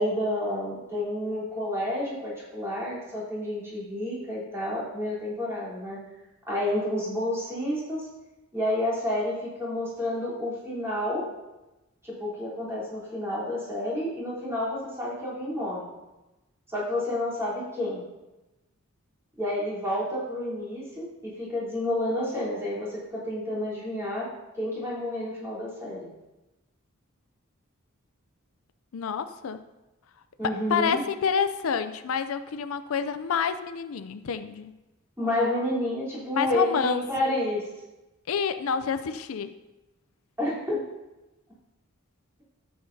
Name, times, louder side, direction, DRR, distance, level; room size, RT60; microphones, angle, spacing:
voice 1, 0.0-6.0 6.5-8.1 8.5-11.2 12.0-15.9 16.7-18.1 19.4-24.3 24.6-26.1 30.4-31.0 35.2-37.7 40.4-40.8, left 1 dB, 15° right, -8 dB, 3.5 m, -30 dB
voice 2, 28.9-29.6 30.4-34.7 36.3-37.0 38.3-39.5, left 6 dB, 80° left, 11 dB, 0.5 m, -28 dB
13.5 x 7.7 x 2.7 m, 1.0 s
head